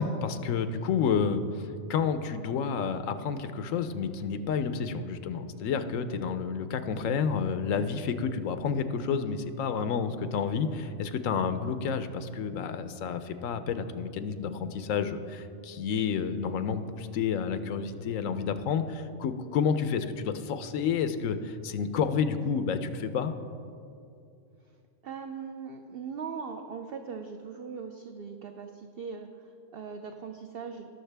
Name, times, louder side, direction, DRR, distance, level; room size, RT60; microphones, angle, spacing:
voice 1, 0.0-23.3, left 6 dB, 80° left, 10 dB, 1.0 m, -30 dB
voice 2, 25.0-30.9, right 6 dB, 60° right, 6 dB, 0.7 m, -40 dB
19.0 x 6.5 x 3.4 m, 2.5 s
omnidirectional pair, 1.4 m